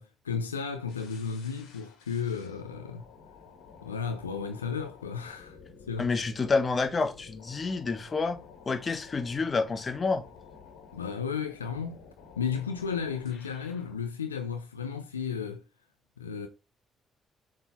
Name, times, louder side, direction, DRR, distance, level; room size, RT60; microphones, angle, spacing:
voice 1, 0.0-3.0 3.8-5.6 5.9-6.1 10.9-12.0 12.4-15.6 16.2-16.5, left 6 dB, 85° left, 0.5 m, -34 dB
sound 1, 0.9-14.0, left 5 dB, 70° left, 1.7 m, -52 dB
voice 2, 6.0-8.4 8.7-10.2, left 4 dB, 35° left, 1.2 m, -28 dB
7.2 x 3.8 x 4.2 m
figure-of-eight pair, 45°, 0 cm